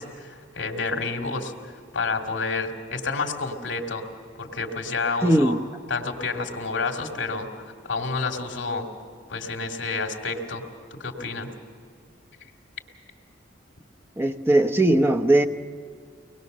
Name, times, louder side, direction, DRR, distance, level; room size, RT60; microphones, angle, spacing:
voice 1, 0.0-1.5 1.9-4.0 4.4-5.6 5.9-7.5 7.8-8.9 9.3-10.6 10.9-11.5, left 4 dB, 75° left, 2.6 m, -29 dB
voice 2, 5.2-5.6 14.2-15.4, right 1 dB, 15° right, 0.8 m, -19 dB
24.0 x 20.0 x 6.7 m
head